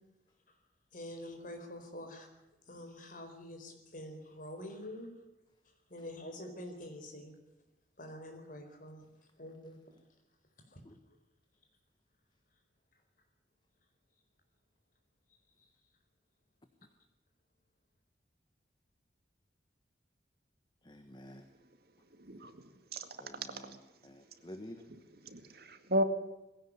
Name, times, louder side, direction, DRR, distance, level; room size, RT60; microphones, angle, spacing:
voice 1, 0.9-2.3 2.7-5.1 5.9-7.4 8.0-9.1 9.4-9.8 10.7-10.8, left 1 dB, 50° left, 5 dB, 4.5 m, -46 dB
voice 2, 20.8-21.5 23.2-23.8 24.0-24.9, left 1 dB, 25° left, 7 dB, 1.4 m, -50 dB
voice 3, 22.2-22.6 22.9-23.1 23.3-23.5 25.2-26.0, equal, 60° right, 8 dB, 2.1 m, -33 dB
20.5 x 16.5 x 9.8 m, 0.96 s
head